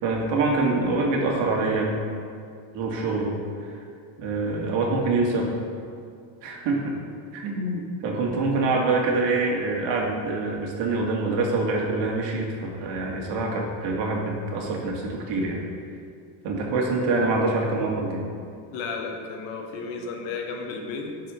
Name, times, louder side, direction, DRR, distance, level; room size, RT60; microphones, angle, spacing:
voice 1, 0.0-1.9 2.7-3.4 4.2-5.5 6.4-6.9 7.3-15.6 16.4-18.2, right 3 dB, 70° right, 0 dB, 2.0 m, -25 dB
voice 2, 18.7-21.2, left 4 dB, 75° left, 3 dB, 1.4 m, -33 dB
11.5 x 4.9 x 5.0 m, 2.3 s
cardioid pair, 140°, 45 cm